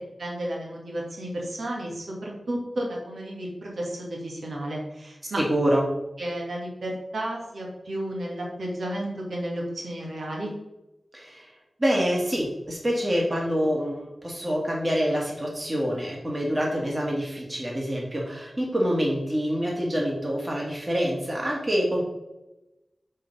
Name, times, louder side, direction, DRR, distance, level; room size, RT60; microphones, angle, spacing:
voice 1, 0.2-5.4 6.2-10.5, right 1 dB, 85° right, -2 dB, 2.0 m, -32 dB
voice 2, 5.4-5.8 11.1-11.5 11.8-22.0, equal, 25° right, -2 dB, 1.8 m, -26 dB
6.5 x 4.3 x 5.4 m, 0.96 s
wide cardioid pair, 105°, 0 cm